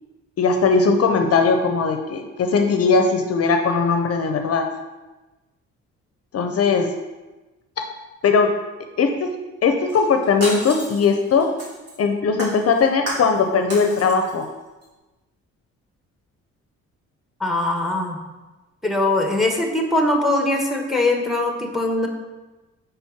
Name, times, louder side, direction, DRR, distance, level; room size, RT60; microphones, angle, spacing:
voice 1, 0.4-4.7 6.3-6.9 8.2-8.5 9.0-9.3 9.6-11.5 12.0-14.5, left 4 dB, 50° left, 5 dB, 0.6 m, -19 dB
Shatter, 9.9-12.0 12.4-13.4 13.7-14.4 14.8-14.9, right 1 dB, 55° right, 2.3 m, -32 dB
voice 2, 17.4-18.2 18.8-22.1, left 2 dB, ahead, 2 dB, 1.1 m, -21 dB
5.1 x 4.4 x 5.8 m, 1.1 s
cardioid pair, 90°, 30 cm